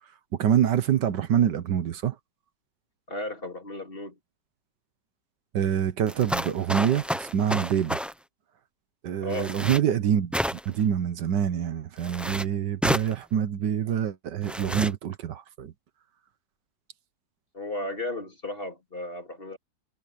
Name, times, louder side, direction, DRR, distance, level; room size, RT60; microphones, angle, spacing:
voice 1, 0.3-2.2 5.5-8.0 9.0-15.7, right 9 dB, 75° right, 1.6 m, -26 dB
voice 2, 3.1-4.2 9.2-9.5 17.5-19.6, left 1 dB, 30° left, 3.1 m, -34 dB
sound 1, 6.1-8.1 9.3-9.8 10.3-10.8 12.0-12.4 12.8-13.1 14.4-14.9, equal, ahead, 0.4 m, -30 dB
omnidirectional pair, 1.9 m